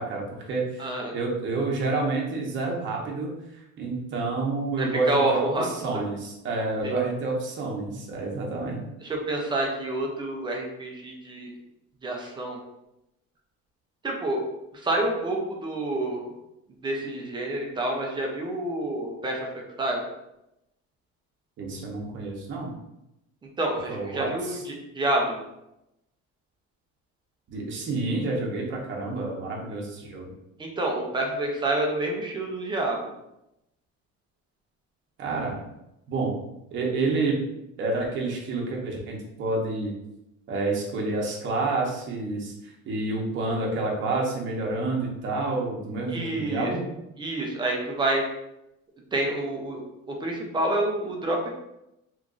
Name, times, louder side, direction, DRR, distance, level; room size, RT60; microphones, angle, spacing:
voice 1, 0.0-0.9 1.1-8.8 21.6-22.7 23.9-24.6 27.5-30.2 35.2-35.6 36.1-36.4 36.7-37.4 37.8-39.9 40.5-46.8, right 3 dB, 40° right, -2 dB, 0.8 m, -29 dB
voice 2, 0.8-1.1 4.8-5.7 6.8-6.9 9.0-11.5 12.0-12.6 14.0-14.4 14.7-16.3 16.8-19.5 19.8-20.0 23.6-25.4 30.6-33.1 46.1-46.7 47.2-48.2 49.1-49.8 50.1-51.5, right 1 dB, 15° right, 0 dB, 0.4 m, -28 dB
3.0 x 2.5 x 3.6 m, 0.87 s
cardioid pair, 180°, 30 cm